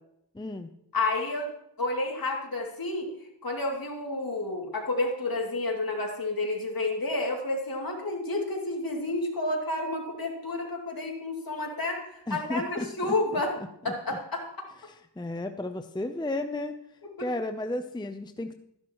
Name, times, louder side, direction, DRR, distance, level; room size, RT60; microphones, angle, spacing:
voice 1, 0.3-0.7 12.3-13.4 14.8-16.8 17.2-18.5, left 2 dB, 10° left, 7 dB, 0.6 m, -33 dB
voice 2, 0.9-1.5 1.8-3.1 3.4-13.5 13.8-14.5 17.2-17.3, left 2 dB, 50° left, 0 dB, 2.8 m, -30 dB
13.5 x 10.5 x 3.1 m, 0.77 s
cardioid pair, 55°, 44 cm